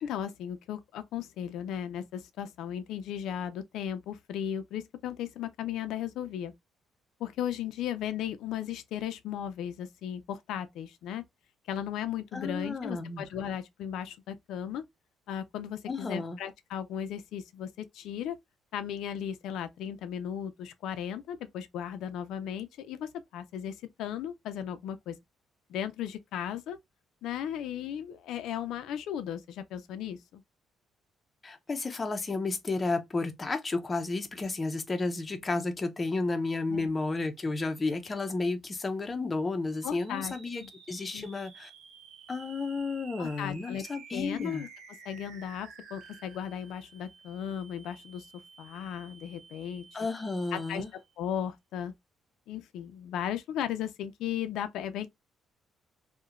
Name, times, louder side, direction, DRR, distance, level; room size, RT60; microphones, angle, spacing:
voice 1, 0.0-6.5 7.2-11.2 11.7-14.8 15.3-18.4 18.7-25.2 25.7-26.8 27.2-30.4 36.7-36.9 39.8-40.3 40.6-40.7 41.1-41.3 43.2-43.8 44.1-44.7 45.1-49.9 50.5-50.8 51.2-51.9 52.5-55.1, left 9 dB, 80° left, 0.4 m, -36 dB
voice 2, 12.3-13.2 15.9-16.4 31.4-41.7 42.3-44.7 49.9-50.9, left 3 dB, 20° left, 0.5 m, -32 dB
sound 1, 39.7-51.2, right 5 dB, 65° right, 0.8 m, -52 dB
2.8 x 2.1 x 2.4 m
cardioid pair, 155°, 0 cm